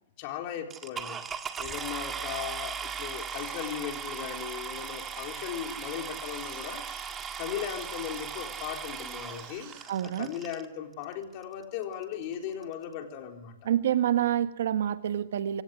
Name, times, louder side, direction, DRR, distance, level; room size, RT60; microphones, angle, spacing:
voice 1, 0.2-1.3 1.6-6.9 7.4-9.7 10.0-13.7, left 9 dB, 45° left, 3 dB, 4.0 m, -37 dB
sound 1, 0.7-10.6 11.4-11.5 12.0-12.1 12.3-12.6, right 7 dB, 20° right, 1.7 m, -38 dB
sound 2, 2.8-10.3, right 9 dB, 40° right, 6.6 m, -50 dB
voice 2, 9.9-10.3 13.6-15.6, right 10 dB, 75° right, 10 dB, 1.5 m, -27 dB
25.0 x 16.5 x 9.9 m, 0.99 s
hypercardioid pair, 140°, 0 cm